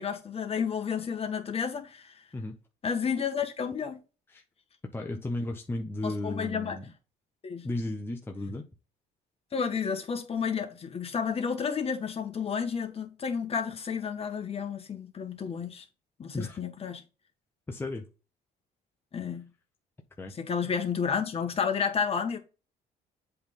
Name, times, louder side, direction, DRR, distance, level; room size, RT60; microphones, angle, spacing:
voice 1, 0.0-2.2 2.8-4.0 6.0-6.8 7.4-7.7 9.5-15.9 16.2-17.0 19.1-19.5 20.3-22.4, left 6 dB, 35° left, 1.5 m, -31 dB
voice 2, 4.9-6.9 7.6-8.6 16.3-16.6 17.7-18.1 20.2-20.3, left 2 dB, 15° left, 0.9 m, -34 dB
7.8 x 3.5 x 3.9 m
cardioid pair, 110°, 17 cm